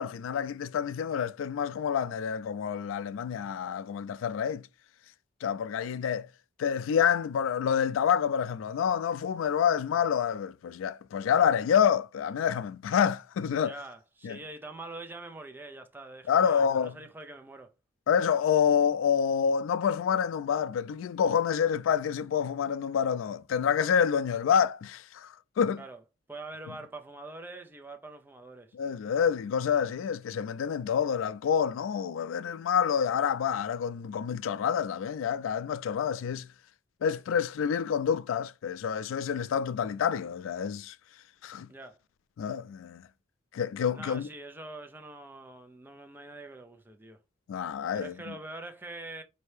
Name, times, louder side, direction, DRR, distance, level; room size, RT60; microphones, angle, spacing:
voice 1, 0.0-4.7 5.4-6.3 6.6-13.8 14.2-14.4 16.3-17.0 18.1-25.8 28.7-36.5 37.0-41.0 41.4-41.7 42.4-43.1 43.5-44.3 47.5-48.3, left 7 dB, 80° left, 0.3 m, -28 dB
voice 2, 13.6-17.7 25.8-26.0 26.3-28.7 41.7-42.0 43.9-47.2 47.9-49.2, right 2 dB, 10° right, 0.4 m, -44 dB
4.3 x 2.7 x 3.2 m
head